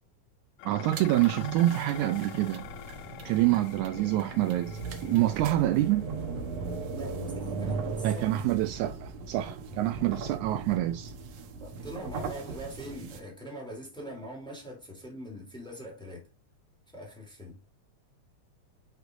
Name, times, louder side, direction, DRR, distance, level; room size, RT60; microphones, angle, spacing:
Dishes pots and pans, 0.6-9.4, left 11 dB, 80° left, 2.2 m, -47 dB
voice 1, 0.6-2.7 3.3-4.8 5.1-6.1 8.0-11.1, right 15 dB, 80° right, 1.8 m, -26 dB
sound 1, 0.8-13.2, right 4 dB, 65° right, 2.1 m, -38 dB
voice 2, 6.9-8.5 11.6-16.3 16.9-17.6, equal, ahead, 2.5 m, -43 dB
9.1 x 6.5 x 2.6 m
omnidirectional pair, 3.6 m